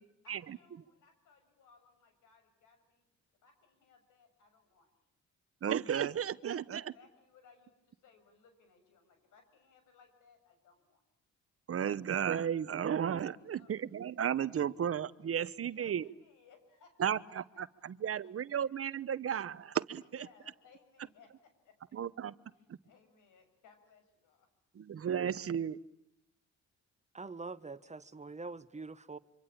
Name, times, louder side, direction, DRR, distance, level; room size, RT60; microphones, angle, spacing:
voice 1, 0.2-3.1 3.4-4.9 6.5-11.0 13.4-13.7 15.6-17.6 20.2-22.0 22.5-24.5, left 5 dB, 85° left, 7 dB, 7.0 m, -64 dB
voice 2, 5.6-6.8 11.7-16.0 17.0-17.7 18.0-20.3 21.9-22.3 22.7-22.8 24.7-25.8, right 8 dB, 50° right, 16 dB, 1.0 m, -34 dB
voice 3, 27.1-29.2, right 3 dB, 25° right, 14 dB, 1.2 m, -44 dB
26.5 x 25.5 x 8.7 m, 0.80 s
cardioid pair, 90°, 30 cm